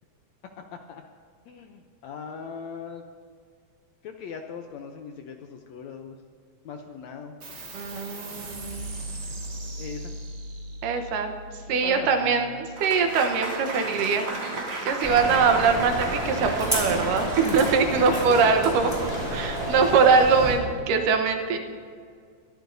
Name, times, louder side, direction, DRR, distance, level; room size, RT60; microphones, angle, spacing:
voice 1, 0.6-1.0 1.5-3.1 4.0-6.2 6.7-7.4 9.8-10.1 11.7-12.6 17.2-17.6 18.1-18.2 19.9-20.0, left 6 dB, 75° left, 4 dB, 1.7 m, -39 dB
sound 1, 7.4-14.3, right 1 dB, 35° right, 2.1 m, -40 dB
voice 2, 7.7-8.9 10.8-11.3 11.7-14.3 14.8-21.6, right 5 dB, 75° right, 5 dB, 2.6 m, -22 dB
Applause / Crowd, 12.8-19.6, right 3 dB, 55° right, 3.6 m, -35 dB
sound 2, 15.0-20.5, equal, 10° right, 3.9 m, -30 dB
23.0 x 14.0 x 2.7 m, 2.1 s
omnidirectional pair, 3.9 m